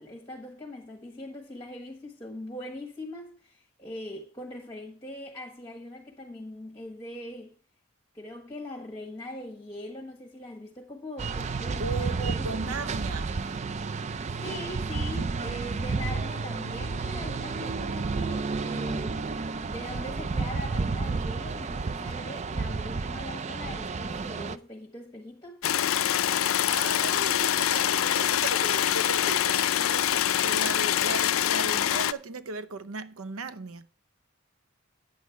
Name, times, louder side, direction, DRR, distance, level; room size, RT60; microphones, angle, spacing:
voice 1, 0.0-7.6 8.1-12.7 14.4-19.3 19.6-25.6, left 1 dB, 20° left, 1.4 m, -41 dB
sound 1, 11.2-24.6, right 4 dB, 30° right, 0.4 m, -31 dB
voice 2, 11.5-13.6 26.7-33.9, right 3 dB, 85° right, 0.7 m, -37 dB
sound 2, 25.6-32.1, left 11 dB, 75° left, 0.4 m, -25 dB
9.6 x 8.5 x 4.5 m
head